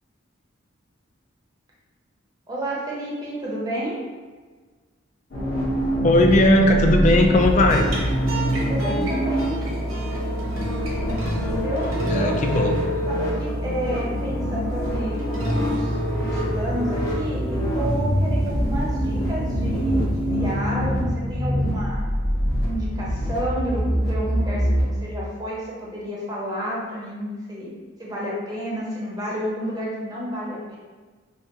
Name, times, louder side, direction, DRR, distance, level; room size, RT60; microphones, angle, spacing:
voice 1, 2.5-4.0 8.5-9.6 11.5-12.4 13.1-22.0 22.6-27.7 28.0-30.8, right 1 dB, 20° right, -5 dB, 0.7 m, -30 dB
sound 1, 5.3-24.8, equal, 55° left, 1.0 m, -25 dB
voice 2, 6.0-7.9 12.1-12.8, left 1 dB, 35° left, 3 dB, 0.3 m, -17 dB
sound 2, 7.3-20.9, right 1 dB, 75° right, 0.8 m, -29 dB
5.5 x 2.2 x 2.8 m, 1.4 s
head